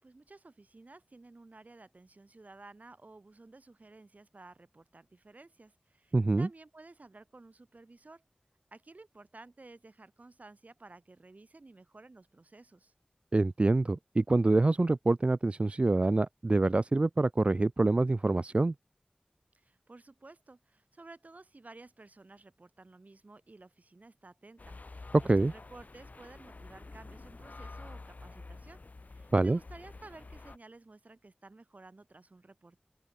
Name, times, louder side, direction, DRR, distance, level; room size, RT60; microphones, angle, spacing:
voice 1, 0.0-8.2 8.7-12.9 19.5-28.8 29.1-32.8, right 2 dB, 70° right, 6.2 m, -54 dB
voice 2, 6.1-6.5 13.3-18.7 25.3-25.5 29.3-29.6, right 2 dB, 45° right, 0.4 m, -26 dB
sound 1, 24.6-30.6, left 3 dB, 75° left, 1.3 m, -48 dB
open air
wide cardioid pair, 55°, 3 cm